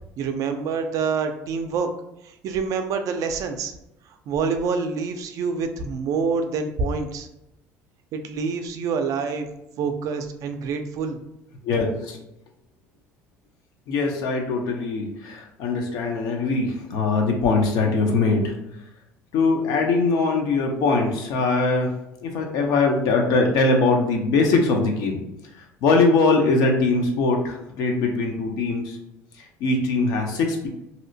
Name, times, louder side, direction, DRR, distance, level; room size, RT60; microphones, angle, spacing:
voice 1, 0.2-1.9 2.2-3.7 4.3-7.3 8.1-9.5 9.8-11.2, right 5 dB, 60° right, 7 dB, 0.4 m, -26 dB
voice 2, 11.6-12.2 13.9-18.5 19.3-21.9 22.2-25.2 25.8-29.0 29.6-30.7, left 3 dB, 70° left, 2 dB, 0.6 m, -21 dB
2.7 x 2.0 x 2.6 m, 0.85 s
supercardioid pair, 85°, 7 cm